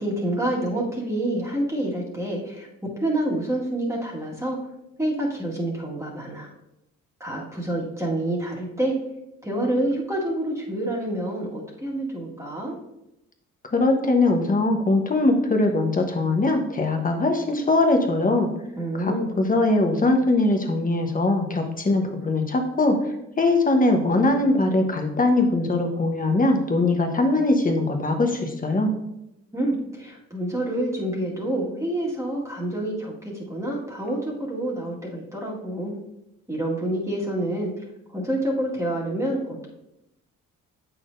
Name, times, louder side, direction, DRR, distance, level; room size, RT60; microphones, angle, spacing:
voice 1, 0.0-2.7 3.0-4.6 5.0-6.5 7.2-9.0 9.4-12.8 18.8-19.3 29.5-36.0 36.5-37.7 38.1-39.7, right 1 dB, 10° right, -4 dB, 1.8 m, -27 dB
voice 2, 13.7-18.5 18.9-23.0 23.4-28.9, left 2 dB, 25° left, 4 dB, 1.1 m, -21 dB
8.2 x 6.0 x 2.6 m, 0.88 s
cardioid pair, 90°, 30 cm